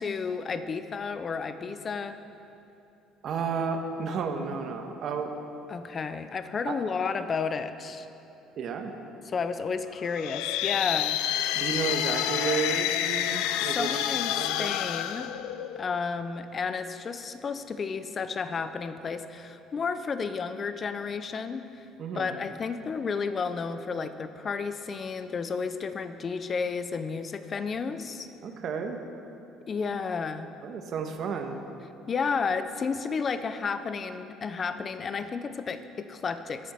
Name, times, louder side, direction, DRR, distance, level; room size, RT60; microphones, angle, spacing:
voice 1, 0.0-2.2 5.7-8.1 9.2-11.2 13.8-15.3 15.8-21.8 22.1-28.3 29.7-30.5 32.1-36.7, left 5 dB, 30° left, 10 dB, 0.6 m, -32 dB
voice 2, 3.2-5.3 6.7-6.9 8.6-8.9 11.5-14.1 14.4-14.7 22.0-22.4 28.4-29.0 30.6-31.6, right 5 dB, 50° right, 4 dB, 1.3 m, -32 dB
sound 1, 10.1-16.0, left 12 dB, 90° left, 0.5 m, -29 dB
21.5 x 8.5 x 4.4 m, 2.8 s
cardioid pair, 135°, 0 cm